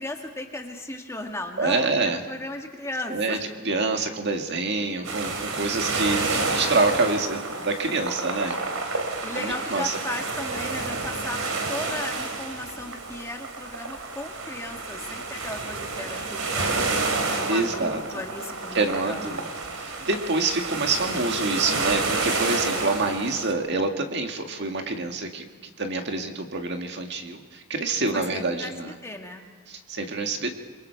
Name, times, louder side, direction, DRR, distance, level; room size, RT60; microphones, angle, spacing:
voice 1, 0.0-3.4 9.2-16.8 17.3-19.5 22.8-23.3 28.1-29.5, left 2 dB, 15° left, 2 dB, 1.8 m, -36 dB
voice 2, 1.6-2.2 3.1-3.4 3.7-8.6 9.3-10.0 17.5-18.2 18.7-19.5 19.8-28.9 29.7-30.5, right 3 dB, 55° right, 4 dB, 1.8 m, -27 dB
sound 1, 5.0-23.5, right 3 dB, 85° right, 2.9 m, -29 dB
27.0 x 22.5 x 4.6 m, 1.4 s
head